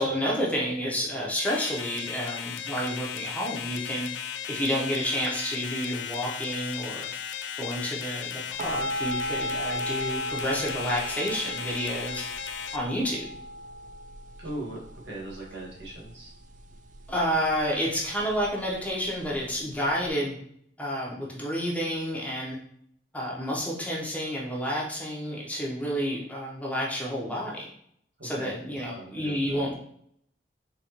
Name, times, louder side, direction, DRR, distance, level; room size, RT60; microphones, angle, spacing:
voice 1, 0.0-4.1 4.5-7.1 7.6-12.3 12.7-13.3 17.1-20.4 20.8-22.6 23.1-27.7 28.2-29.7, equal, 10° left, -4 dB, 0.9 m, -30 dB
sound 1, 1.4-12.8, left 8 dB, 85° left, 0.4 m, -36 dB
sound 2, 8.6-20.1, equal, 45° right, 0.3 m, -37 dB
voice 2, 14.4-16.3 28.2-28.6 28.9-29.7, right 1 dB, 75° right, -4 dB, 1.5 m, -39 dB
4.2 x 3.1 x 3.0 m, 0.69 s
head